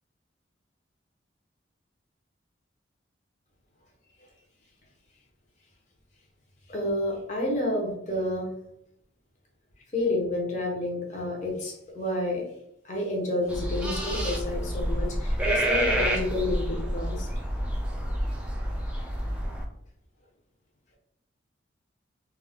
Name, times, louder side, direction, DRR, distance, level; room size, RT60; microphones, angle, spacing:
voice 1, 6.7-8.5 9.9-12.5 12.8-17.3 19.0-19.1, left 1 dB, 40° left, -2 dB, 0.7 m, -30 dB
sound 1, 13.5-19.6, equal, 5° right, 0.3 m, -28 dB
2.3 x 2.1 x 3.4 m, 0.75 s
head